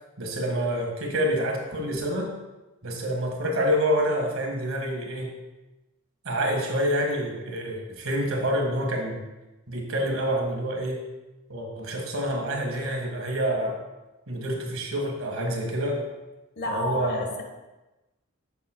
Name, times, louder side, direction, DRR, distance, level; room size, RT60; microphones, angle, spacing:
voice 1, 0.2-2.3 2.8-5.3 6.3-9.2 9.7-11.0 11.5-13.8 14.3-16.0 16.7-17.4, equal, 75° right, 1 dB, 1.7 m, -27 dB
voice 2, 16.6-17.4, left 1 dB, 55° left, 3 dB, 1.2 m, -30 dB
10.5 x 7.3 x 2.3 m, 1.0 s
head